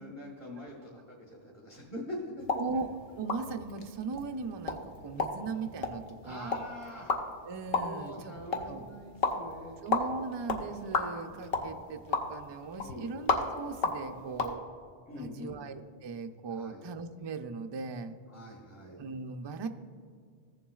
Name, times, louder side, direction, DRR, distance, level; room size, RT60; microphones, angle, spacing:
voice 1, 0.0-2.4 6.2-7.1 7.8-9.8 12.8-13.1 15.1-15.6 16.5-16.8 18.3-19.0, left 1 dB, 15° left, -3 dB, 1.1 m, -44 dB
sound 1, 2.4-14.5, left 3 dB, 70° left, 1.0 m, -35 dB
voice 2, 2.6-2.9 3.2-6.6 7.4-8.3 8.7-8.8 9.8-14.6 15.2-18.2 18.9-19.7, right 4 dB, 45° right, 6 dB, 0.3 m, -38 dB
15.5 x 7.2 x 2.3 m, 2.1 s
omnidirectional pair, 1.0 m